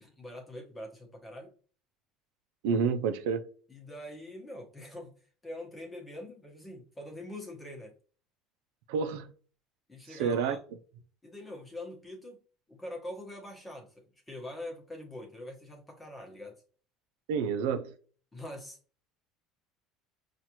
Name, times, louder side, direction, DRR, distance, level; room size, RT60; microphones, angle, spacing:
voice 1, 0.0-1.5 3.7-5.1 5.4-7.9 9.9-10.6 11.2-12.4 12.7-16.5 18.3-18.8, left 1 dB, 10° left, 1.1 m, -44 dB
voice 2, 2.6-3.5 8.9-9.3 10.1-10.6 17.3-17.9, right 6 dB, 85° right, 0.5 m, -29 dB
5.7 x 2.5 x 2.9 m
cardioid pair, 135°, 0 cm